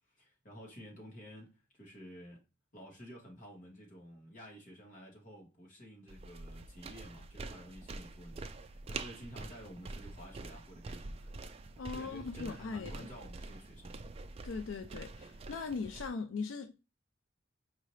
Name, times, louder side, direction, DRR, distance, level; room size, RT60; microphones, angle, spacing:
voice 1, 0.1-2.4 2.7-11.3 11.9-14.1, equal, 40° left, 1.6 m, -51 dB
sound 1, 6.1-16.1, right 3 dB, 30° right, 0.3 m, -46 dB
voice 2, 11.8-13.1 14.4-16.7, left 4 dB, 80° left, 0.4 m, -39 dB
4.7 x 2.8 x 3.1 m
head